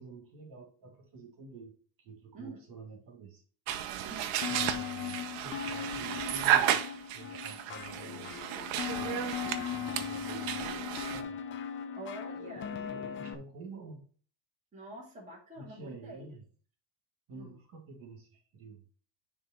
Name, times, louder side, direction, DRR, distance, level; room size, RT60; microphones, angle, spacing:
voice 1, 0.0-1.7 2.0-3.4 4.5-6.8 7.1-8.3 8.9-11.4 12.7-14.1 15.6-16.4 17.3-18.8, right 4 dB, 45° right, 1 dB, 2.7 m, -48 dB
sound 1, 3.7-11.2, right 11 dB, 70° right, 1.0 m, -33 dB
sound 2, 4.4-13.3, left 9 dB, 25° left, 0.5 m, -39 dB
voice 2, 12.0-13.4 14.7-16.3 17.3-17.6, right 1 dB, 15° right, -4 dB, 2.2 m, -47 dB
10.0 x 3.7 x 4.5 m, 0.42 s
cardioid pair, 170°, 46 cm